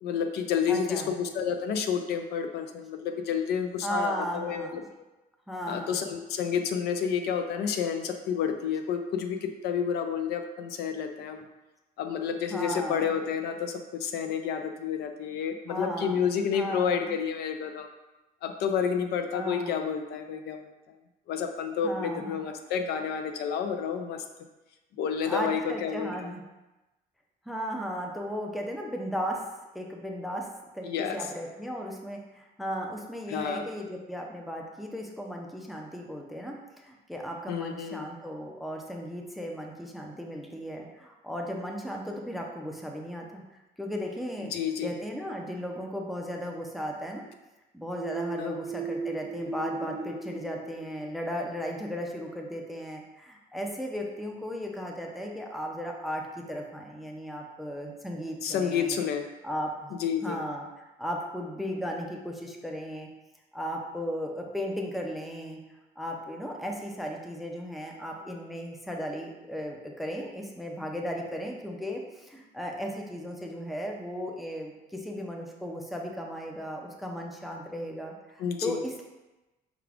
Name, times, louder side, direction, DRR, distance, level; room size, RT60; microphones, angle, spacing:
voice 1, 0.0-4.8 5.7-11.4 12.0-17.9 18.4-20.7 21.3-24.2 25.0-26.3 30.8-31.2 33.3-33.7 37.5-38.1 44.4-44.9 48.4-48.6 58.4-59.3 60.0-60.4 78.4-78.8, left 7 dB, 70° left, 6 dB, 0.4 m, -30 dB
voice 2, 0.7-1.1 3.8-4.9 5.5-6.1 12.5-13.1 15.7-16.3 16.5-17.1 19.3-19.8 21.8-22.4 25.3-26.4 27.5-29.4 29.7-30.5 30.7-43.4 43.8-44.5 44.8-47.2 47.7-59.0 59.4-63.1 63.5-65.6 66.0-79.0, equal, ahead, 1 dB, 0.4 m, -36 dB
sound 1, 47.9-51.6, right 3 dB, 20° left, 1.3 m, -37 dB
4.8 x 2.4 x 3.4 m, 1.1 s
cardioid pair, 145°, 17 cm